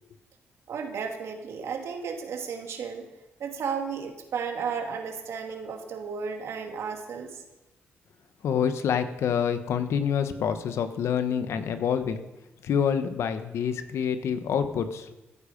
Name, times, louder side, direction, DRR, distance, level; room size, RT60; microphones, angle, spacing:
voice 1, 0.7-3.1 3.4-7.4, right 6 dB, 75° right, 3 dB, 2.4 m, -33 dB
voice 2, 8.4-12.2 12.6-15.1, left 7 dB, 75° left, 9 dB, 1.1 m, -27 dB
15.5 x 10.0 x 5.2 m, 1.0 s
supercardioid pair, 65°, 5 cm